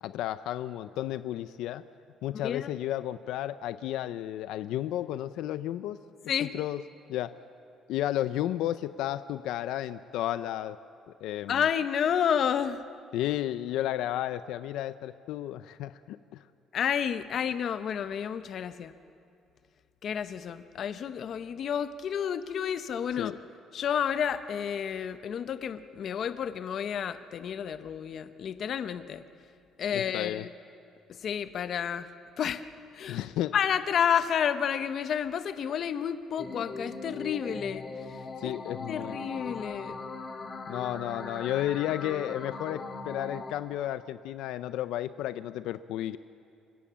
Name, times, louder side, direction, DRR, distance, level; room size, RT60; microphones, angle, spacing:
voice 1, 0.0-1.8 2.2-6.0 6.5-6.8 7.1-7.3 7.9-10.8 11.2-11.6 13.1-16.4 23.2-23.3 29.9-30.5 33.1-33.5 38.4-39.2 40.7-46.2, left 13 dB, 75° left, 13 dB, 0.5 m, -32 dB
voice 2, 11.5-12.9 16.7-18.9 20.0-23.4 23.7-29.2 29.8-30.5 31.1-32.1 32.4-32.6 32.9-33.2 33.5-37.8 38.4-38.6 38.9-40.0, left 8 dB, 40° left, 12 dB, 0.7 m, -30 dB
sound 1, 36.4-43.5, left 3 dB, 25° left, 1.8 m, -40 dB
27.0 x 15.5 x 7.4 m, 2.5 s
cardioid pair, 170°, 0 cm